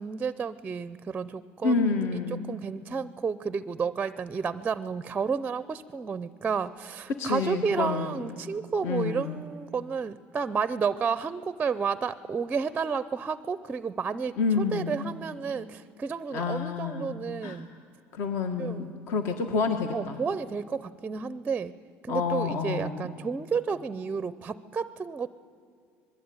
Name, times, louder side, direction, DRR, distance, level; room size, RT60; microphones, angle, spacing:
voice 1, 0.0-17.7 18.6-19.0 19.9-21.7 22.0-25.3, right 5 dB, 20° right, 15 dB, 0.5 m, -31 dB
voice 2, 1.6-2.6 7.1-8.1 8.8-9.4 14.4-15.0 16.3-17.1 17.4-17.6 18.1-20.2 22.1-23.1, left 4 dB, 55° left, 6 dB, 1.8 m, -29 dB
26.0 x 21.0 x 9.6 m, 2.4 s
cardioid pair, 160°, 5 cm